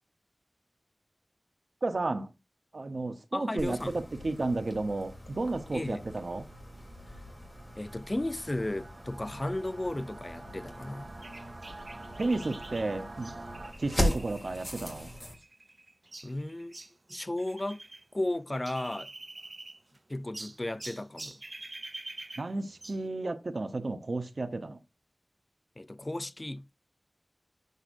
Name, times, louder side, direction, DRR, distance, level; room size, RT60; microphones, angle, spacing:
voice 1, 1.8-2.3 2.7-6.5 12.2-13.3 13.8-15.1 22.4-24.8, right 2 dB, 85° right, 0.9 m, -32 dB
voice 2, 3.3-4.0 5.7-6.1 7.8-11.1 16.2-16.8 17.1-17.8 18.1-19.1 20.1-21.4 25.8-26.7, left 1 dB, 35° left, 0.3 m, -34 dB
sound 1, 3.6-15.4, left 1 dB, 20° left, 3.2 m, -39 dB
Singing / Musical instrument, 6.5-13.7, right 2 dB, 70° right, 1.3 m, -48 dB
sound 2, 11.2-18.0 18.3-20.0 20.3-23.1, right 2 dB, 55° right, 0.5 m, -47 dB
9.8 x 7.9 x 2.6 m
wide cardioid pair, 55°, 0 cm